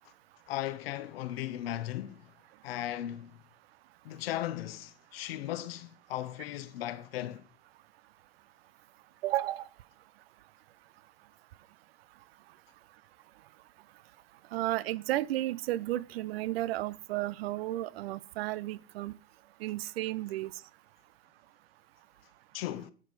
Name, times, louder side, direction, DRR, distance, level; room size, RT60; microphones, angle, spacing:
voice 1, 0.5-2.3 2.6-3.4 4.0-7.4 22.5-22.9, left 13 dB, 85° left, 0.9 m, -37 dB
voice 2, 9.2-9.6 14.5-19.2 19.6-20.5, right 15 dB, 85° right, 0.5 m, -33 dB
11.0 x 4.9 x 3.9 m
supercardioid pair, 105°, 29 cm